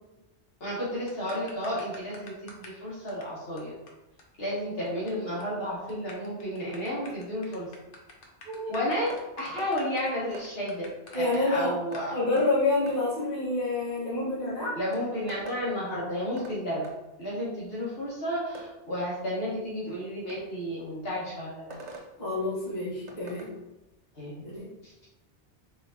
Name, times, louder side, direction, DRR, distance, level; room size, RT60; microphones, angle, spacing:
voice 1, 0.6-3.7 4.4-7.7 8.7-10.8 11.1-12.2 14.7-16.9 17.2-21.7 24.1-24.3 24.8-25.1, equal, 60° left, -7 dB, 1.4 m, -32 dB
sound 1, 1.1-2.8 3.1-3.2 3.6-3.7 3.9-4.0 4.2-4.3 4.5-5.1 5.4-5.6 5.9-11.4 11.9-12.1, left 2 dB, 90° left, 1.1 m, -48 dB
voice 2, 8.4-8.8 11.1-11.7 12.1-14.8 20.4-20.5 22.2-23.5 24.4-24.7, left 2 dB, 40° left, -7 dB, 1.3 m, -28 dB
sound 2, 9.1-9.2 9.6-9.7 10.3-10.5 11.9-12.1 12.4-12.5 12.9-13.0 14.4-14.5 14.9-15.6 16.4-16.6 16.8-17.0 18.5-18.7 20.3-20.4 21.7-22.1 23.1-23.5, right 2 dB, 45° right, 0.6 m, -43 dB
4.4 x 3.4 x 2.8 m, 1.0 s
omnidirectional pair, 1.2 m